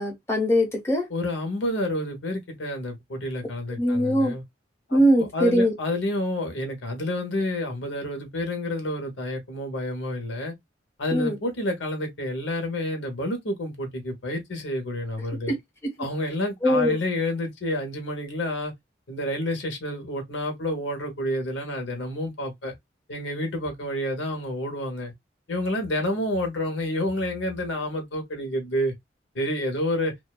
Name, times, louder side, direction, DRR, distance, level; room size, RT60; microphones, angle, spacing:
voice 1, 0.0-1.0 3.8-4.3 4.9-5.7 11.1-11.4 16.6-17.0, equal, 15° left, 0.9 m, -21 dB
voice 2, 1.1-4.4 4.9-10.5 11.0-15.6 16.0-18.7 19.1-22.7 23.1-25.1 25.5-28.9 29.3-30.1, left 1 dB, 75° left, 1.0 m, -29 dB
2.5 x 2.3 x 2.3 m
head